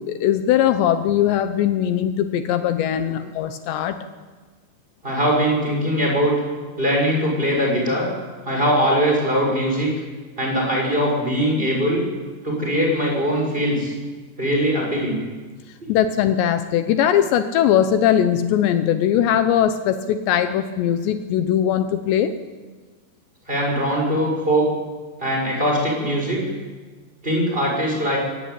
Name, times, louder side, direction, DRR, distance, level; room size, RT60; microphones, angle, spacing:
voice 1, 0.0-4.0 15.9-22.3, left 10 dB, 80° left, 9 dB, 3.1 m, -20 dB
voice 2, 5.0-6.3 6.8-8.1 8.4-9.9 10.4-12.0 12.4-13.9 14.4-15.2 23.5-24.7 25.2-26.4 27.2-28.2, equal, 10° right, -1 dB, 6.4 m, -21 dB
21.5 x 19.0 x 8.8 m, 1.4 s
omnidirectional pair, 5.2 m